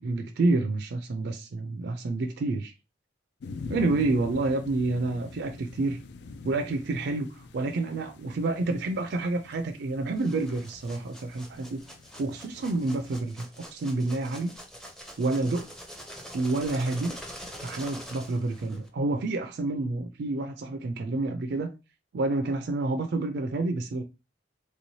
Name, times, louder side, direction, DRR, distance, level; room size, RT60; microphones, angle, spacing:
voice 1, 0.0-2.7 3.7-6.0 6.4-11.8 12.2-14.5 15.2-15.6 16.3-17.2 17.6-21.7 22.1-24.0, right 2 dB, 65° right, 0.4 m, -28 dB
sound 1, 3.4-13.2, left 4 dB, 65° left, 0.3 m, -44 dB
sound 2, 10.2-18.9, equal, 5° left, 0.6 m, -45 dB
3.3 x 3.0 x 2.7 m
head